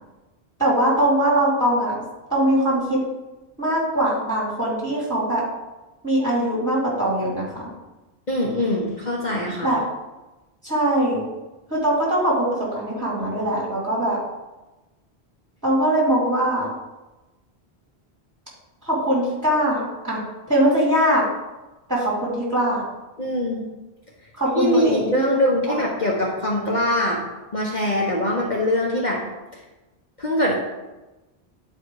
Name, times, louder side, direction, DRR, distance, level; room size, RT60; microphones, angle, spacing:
voice 1, 0.6-2.0 2.3-3.0 3.6-5.4 6.0-7.7 9.6-9.8 10.6-11.2 11.7-14.2 15.6-16.7 18.8-20.2 20.5-21.2 21.9-22.8 24.4-25.4 25.7-25.8, right 1 dB, 15° right, -6 dB, 2.9 m, -21 dB
voice 2, 8.3-9.8 23.2-23.7 24.5-27.2 27.5-29.2 30.2-30.5, left 1 dB, 45° left, -3 dB, 1.3 m, -22 dB
10.0 x 4.5 x 4.8 m, 1.1 s
omnidirectional pair, 1.1 m